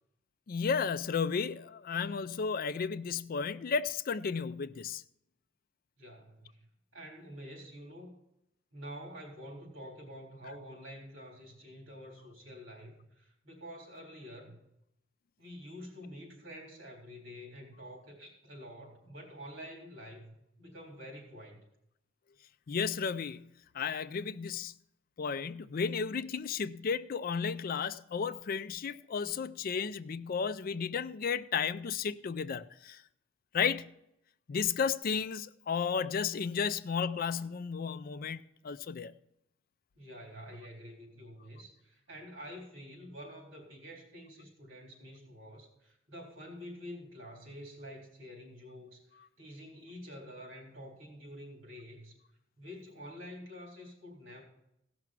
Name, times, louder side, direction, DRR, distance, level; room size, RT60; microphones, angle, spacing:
voice 1, 0.5-5.0 22.7-24.7 25.2-33.0 33.5-33.9 34.5-39.1, left 6 dB, 50° left, 0.4 m, -33 dB
voice 2, 6.0-6.7 6.9-8.1 8.7-14.6 15.4-21.6 40.0-52.2 52.6-54.4, equal, 80° right, 3.8 m, -48 dB
16.5 x 6.0 x 6.0 m
head